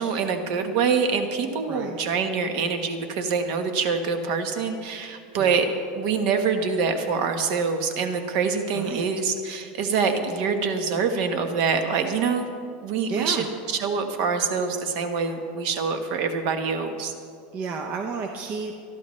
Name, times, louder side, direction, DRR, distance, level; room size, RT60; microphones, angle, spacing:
voice 1, 0.0-5.7 5.9-12.5 12.8-17.1, right 5 dB, 50° right, 6 dB, 1.3 m, -25 dB
voice 2, 8.7-9.1 13.1-13.5 17.5-18.7, right 4 dB, 30° right, 3 dB, 0.7 m, -31 dB
25.5 x 11.5 x 3.2 m, 2.3 s
supercardioid pair, 170°, 5 cm